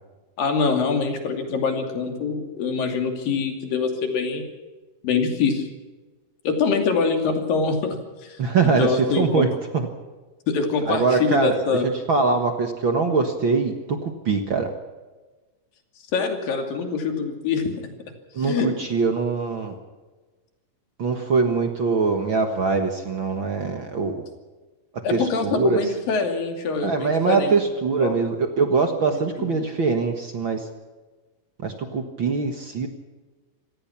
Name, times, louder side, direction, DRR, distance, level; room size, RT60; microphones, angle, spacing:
voice 1, 0.4-4.4 5.0-5.7 6.4-7.8 8.2-8.4 8.6-9.5 10.5-11.9 16.1-17.9 18.4-18.7 25.0-27.7 28.0-28.1 29.1-29.5, left 5 dB, 85° left, 4 dB, 4.4 m, -24 dB
voice 2, 8.4-9.5 10.9-11.6 12.1-13.7 14.0-14.7 18.3-19.7 21.0-24.2 25.1-25.8 26.8-30.7 31.6-32.9, right 4 dB, 50° right, 5 dB, 1.7 m, -22 dB
26.5 x 17.5 x 6.0 m, 1.3 s
omnidirectional pair, 3.9 m